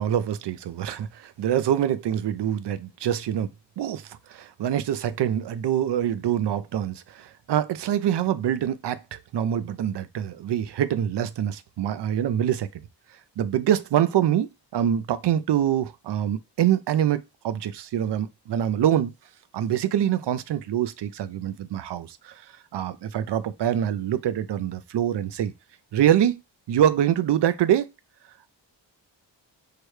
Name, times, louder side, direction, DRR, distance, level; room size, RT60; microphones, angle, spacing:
voice 1, 0.0-3.5 3.8-12.7 13.4-19.1 19.5-22.4 22.7-25.5 25.9-26.4 26.7-27.9, right 10 dB, 65° right, 0.5 m, -25 dB
4.7 x 2.2 x 4.7 m
wide cardioid pair, 170°, 44 cm